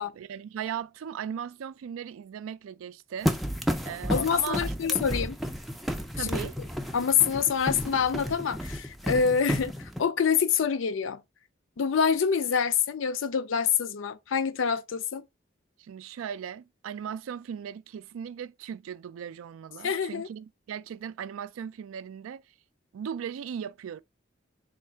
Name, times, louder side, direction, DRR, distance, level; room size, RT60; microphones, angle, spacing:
voice 1, 0.0-3.3 3.9-4.6 6.1-6.6 15.8-22.4 22.9-24.0, right 8 dB, 85° right, 0.3 m, -38 dB
sound 1, 3.2-10.0, equal, ahead, 0.3 m, -32 dB
voice 2, 4.1-5.4 6.2-6.5 6.9-11.2 11.8-15.2 19.8-20.3, left 7 dB, 70° left, 0.4 m, -26 dB
3.6 x 2.4 x 4.3 m
head